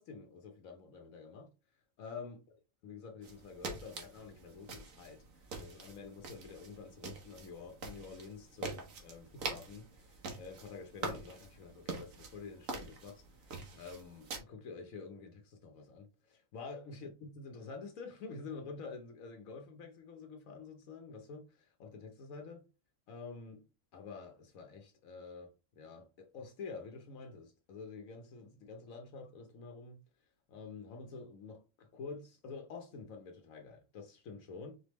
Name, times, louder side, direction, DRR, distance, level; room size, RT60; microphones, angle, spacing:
voice 1, 0.0-1.5 2.0-2.4 2.8-22.6 23.1-30.0 30.5-34.7, left 4 dB, 80° left, 1.2 m, -48 dB
sound 1, 3.2-14.4, right 3 dB, 75° right, 1.4 m, -45 dB
4.4 x 3.4 x 3.1 m
omnidirectional pair, 1.4 m